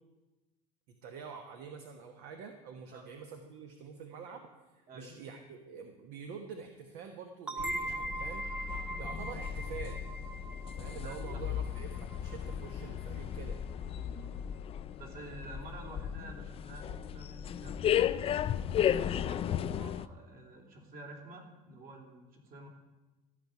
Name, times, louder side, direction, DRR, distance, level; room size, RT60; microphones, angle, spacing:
voice 1, 1.0-4.4 4.7-8.5 9.0-10.0 10.8-13.6, right 6 dB, 70° right, 5 dB, 1.2 m, -46 dB
sound 1, 7.5-12.9, right 1 dB, 5° right, 0.7 m, -41 dB
sound 2, 7.6-20.1, left 9 dB, 35° left, 0.4 m, -35 dB
voice 2, 11.0-11.4 13.9-14.4 15.0-18.3 18.8-22.7, right 2 dB, 55° right, 1 dB, 3.1 m, -50 dB
14.0 x 5.2 x 9.4 m, 1.2 s
supercardioid pair, 115°, 18 cm